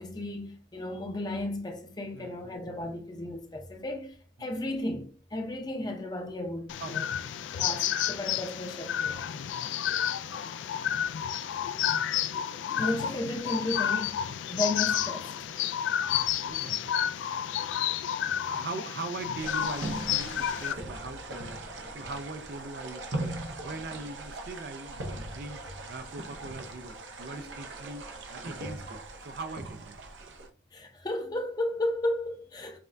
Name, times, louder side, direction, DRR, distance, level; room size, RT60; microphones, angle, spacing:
voice 1, 0.0-7.0 7.6-9.2 12.7-15.5 27.4-27.5 30.7-32.8, left 1 dB, 20° left, 0.6 m, -34 dB
voice 2, 2.1-3.0 4.4-4.5 6.8-7.0 7.3-7.5 9.8-9.9 16.4-17.1 18.5-21.6 21.9-23.4 23.6-25.6 25.9-28.0 28.3-30.0, right 3 dB, 55° right, 0.4 m, -41 dB
sound 1, 6.7-20.7, left 9 dB, 80° left, 0.3 m, -31 dB
sound 2, 19.4-30.5, right 2 dB, 85° right, 0.7 m, -39 dB
5.8 x 2.2 x 2.5 m
head